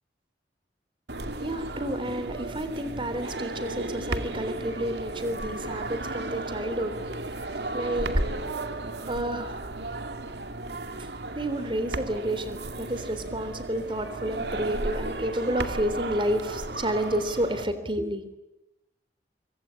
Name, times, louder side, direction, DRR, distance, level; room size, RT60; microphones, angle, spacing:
sound 1, 1.1-17.6, right 2 dB, 70° right, 2.3 m, -34 dB
voice 1, 1.2-9.7 11.3-18.2, right 1 dB, 30° right, 11 dB, 3.6 m, -31 dB
24.5 x 24.5 x 8.7 m, 0.94 s
head